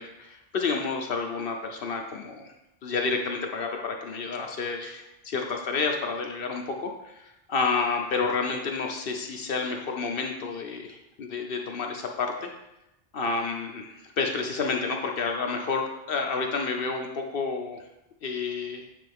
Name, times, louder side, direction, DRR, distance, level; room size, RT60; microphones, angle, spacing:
voice 1, 0.0-2.5 2.8-12.5 13.1-17.8 18.2-18.8, left 4 dB, 65° left, 2 dB, 0.8 m, -30 dB
8.5 x 3.4 x 3.5 m, 0.90 s
omnidirectional pair, 1.1 m